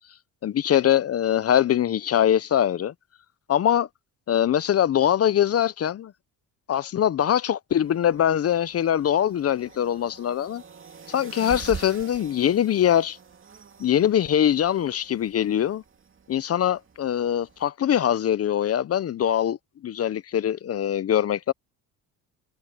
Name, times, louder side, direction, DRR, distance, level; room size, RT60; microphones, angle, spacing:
voice 1, 0.4-2.9 3.5-3.9 4.3-6.1 6.7-10.6 11.1-13.2 13.8-15.8 16.3-19.6 19.8-21.5, left 10 dB, 40° left, 0.7 m, -22 dB
sound 1, 7.7-17.7, right 6 dB, 35° right, 2.6 m, -45 dB
cardioid pair, 95°, 36 cm